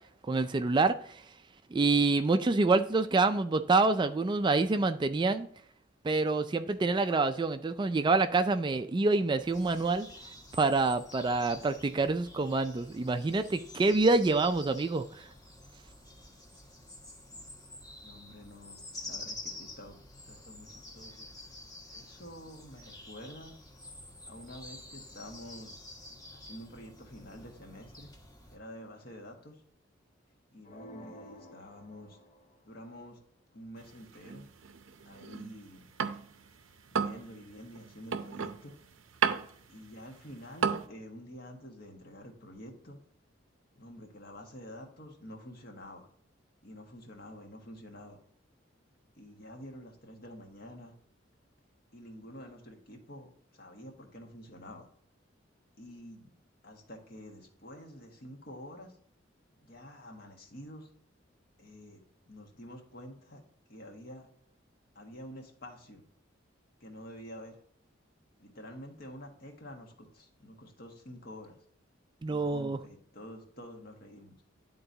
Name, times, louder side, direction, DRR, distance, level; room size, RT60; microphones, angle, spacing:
voice 1, 0.3-1.2 1.7-5.5 6.0-10.1 10.5-15.2 72.2-72.8, right 3 dB, 25° right, 10 dB, 0.3 m, -27 dB
sound 1, 9.4-28.6, left 2 dB, 20° left, 1.3 m, -49 dB
voice 2, 18.0-20.0 20.2-21.3 21.9-23.6 24.3-25.8 26.3-28.1 28.5-29.6 30.5-32.2 32.7-33.2 33.5-34.5 35.0-35.8 36.9-38.7 39.7-43.0 43.7-46.1 46.6-48.2 49.1-50.9 51.9-54.9 55.8-56.3 56.6-59.0 59.6-60.9 61.6-62.0 62.3-63.4 63.7-64.3 64.9-66.0 66.8-67.6 68.4-71.6 72.2-74.3, equal, 50° left, 2 dB, 1.5 m, -48 dB
sound 2, 30.6-32.7, equal, 35° left, 0.8 m, -51 dB
sound 3, 33.8-36.5 36.8-40.9, right 6 dB, 85° right, 0.6 m, -34 dB
11.0 x 3.9 x 2.8 m, 0.63 s
head